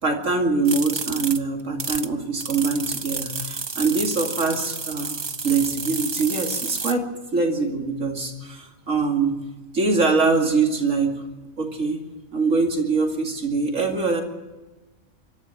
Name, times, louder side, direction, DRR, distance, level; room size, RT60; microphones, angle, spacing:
voice 1, 0.0-9.3 9.7-11.2 11.6-12.0 12.3-14.2, right 4 dB, 70° right, 2 dB, 3.0 m, -23 dB
sound 1, 0.7-2.1 2.4-6.9, right 4 dB, 30° right, 0.6 m, -30 dB
24.5 x 14.0 x 9.0 m, 1.2 s
omnidirectional pair, 1.4 m